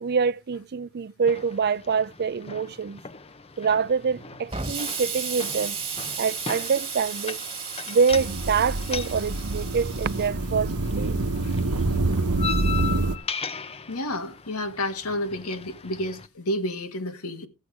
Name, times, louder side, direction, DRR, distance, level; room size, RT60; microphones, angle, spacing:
voice 1, 0.0-3.0 3.6-5.8 6.2-7.4 7.9-11.2, right 5 dB, 45° right, 0.5 m, -25 dB
sound 1, 1.3-16.3, left 6 dB, 25° left, 0.7 m, -38 dB
Explosion, 4.5-10.3, right 6 dB, 25° right, 1.9 m, -34 dB
sound 2, 8.1-13.2, right 2 dB, 85° right, 1.0 m, -26 dB
voice 2, 13.9-17.5, left 1 dB, 80° left, 1.7 m, -30 dB
13.5 x 8.0 x 4.8 m
head